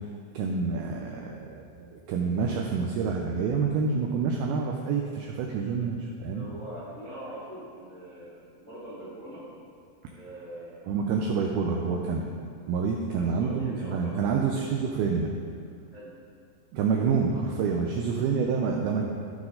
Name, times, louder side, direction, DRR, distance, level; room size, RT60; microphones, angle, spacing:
voice 1, 0.3-6.5 10.9-12.3 12.7-15.3 16.7-19.1, right 5 dB, 85° right, 0 dB, 2.2 m, -27 dB
voice 2, 6.3-9.5 10.1-10.9 13.2-14.3 14.6-14.7 15.9-16.2, right 1 dB, 40° left, -9 dB, 1.0 m, -43 dB
14.5 x 6.0 x 3.8 m, 2.3 s
omnidirectional pair, 5.2 m